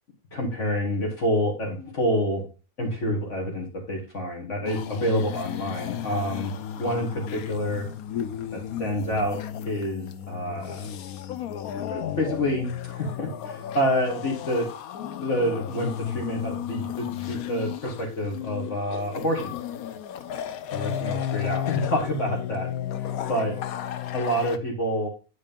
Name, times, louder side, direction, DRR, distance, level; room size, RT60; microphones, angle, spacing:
voice 1, 0.3-2.5 2.8-7.9 8.5-9.4 9.7-10.9 11.8-14.7 15.2-19.5 20.7-22.7 23.0-23.5 24.1-25.1, equal, 55° left, 0 dB, 2.2 m, -28 dB
sound 1, 4.7-24.6, left 10 dB, 80° left, 1.2 m, -33 dB
10.0 x 4.0 x 5.2 m, 0.33 s
omnidirectional pair, 1.5 m